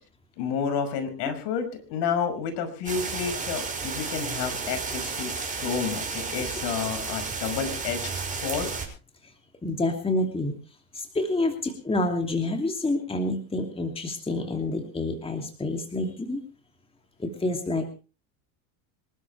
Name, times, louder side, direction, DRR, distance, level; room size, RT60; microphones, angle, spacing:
voice 1, 0.4-8.7, left 6 dB, 60° left, 7 dB, 5.7 m, -30 dB
sound 1, 2.9-8.9, right 4 dB, 15° right, 6.2 m, -32 dB
voice 2, 9.6-10.6 10.9-16.4 17.2-17.9, left 2 dB, 10° left, 4 dB, 2.7 m, -28 dB
26.0 x 12.5 x 3.3 m, 0.34 s
supercardioid pair, 105°, 46 cm